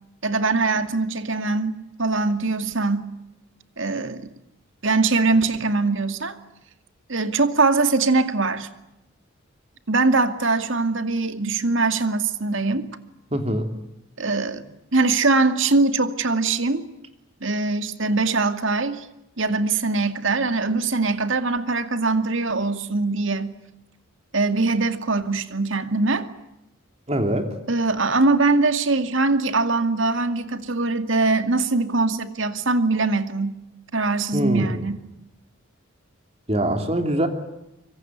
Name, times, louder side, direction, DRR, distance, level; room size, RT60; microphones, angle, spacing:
voice 1, 0.2-3.1 3.8-4.3 4.8-6.4 7.1-8.7 9.9-12.9 14.2-16.9 17.4-19.1 19.4-23.5 24.3-26.3 27.7-33.6 33.9-35.0, right 3 dB, 65° right, 9 dB, 2.3 m, -22 dB
voice 2, 13.3-13.7 27.1-27.5 34.3-34.9 36.5-37.3, right 1 dB, 30° right, 6 dB, 3.2 m, -23 dB
25.5 x 25.0 x 9.4 m, 0.87 s
head